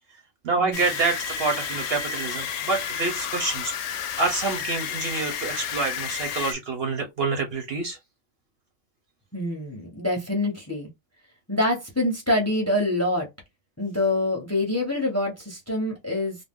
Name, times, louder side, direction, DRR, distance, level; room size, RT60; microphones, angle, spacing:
voice 1, 0.4-3.7 4.2-8.0, right 3 dB, 55° right, 0.8 m, -27 dB
sound 1, 0.7-6.5, left 7 dB, 65° left, 0.8 m, -31 dB
voice 2, 9.3-10.9 11.5-13.3 13.8-16.4, left 1 dB, 15° left, 0.8 m, -25 dB
2.5 x 2.1 x 3.6 m
omnidirectional pair, 1.4 m